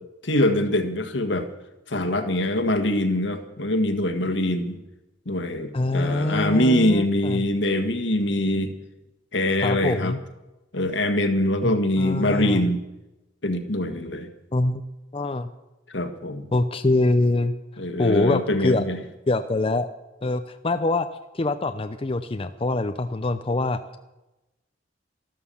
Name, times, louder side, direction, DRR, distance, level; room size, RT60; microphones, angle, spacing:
voice 1, 0.2-1.5 1.9-4.8 5.2-8.7 9.3-10.2 10.7-12.8 13.4-14.3 15.9-16.5 17.8-19.0, left 1 dB, 75° left, 8 dB, 1.7 m, -23 dB
voice 2, 5.7-7.4 9.6-10.2 11.6-11.7 12.0-12.7 14.5-14.8 15.1-15.5 16.5-17.5 18.0-18.9 19.3-19.9 20.2-21.1 21.3-23.8, left 2 dB, 30° left, 9 dB, 0.6 m, -24 dB
13.0 x 13.0 x 7.0 m, 1.0 s
head